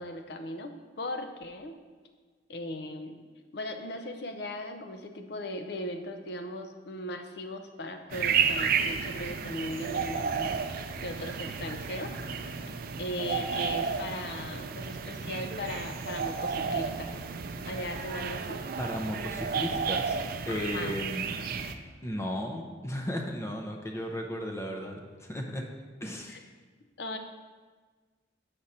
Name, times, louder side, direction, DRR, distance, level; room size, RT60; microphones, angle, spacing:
voice 1, 0.0-1.8 2.5-3.2 3.5-10.6 11.0-12.1 13.0-17.2 17.7-18.6 20.5-20.9 26.3-26.4 27.0-27.2, left 1 dB, 60° left, 6 dB, 0.6 m, -38 dB
sound 1, 8.1-21.7, right 6 dB, 50° right, 0.4 m, -32 dB
voice 2, 18.8-20.2 20.5-21.2 22.0-25.6 26.0-26.4, equal, 15° left, 2 dB, 0.6 m, -35 dB
7.3 x 5.0 x 4.2 m, 1.4 s
head